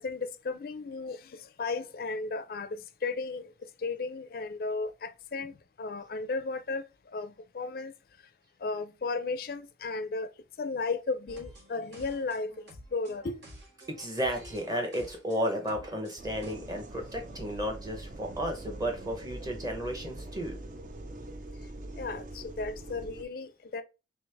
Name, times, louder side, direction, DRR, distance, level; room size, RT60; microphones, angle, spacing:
voice 1, 0.0-6.8 7.1-7.9 8.6-10.3 10.6-12.5 12.9-13.4 21.9-23.8, left 3 dB, 55° left, 0.4 m, -35 dB
sound 1, 11.3-16.5, right 1 dB, 75° right, 1.5 m, -50 dB
voice 2, 13.9-20.6, equal, 20° right, 0.9 m, -33 dB
sound 2, 16.2-23.2, right 1 dB, 45° right, 0.4 m, -43 dB
3.2 x 3.1 x 3.3 m
head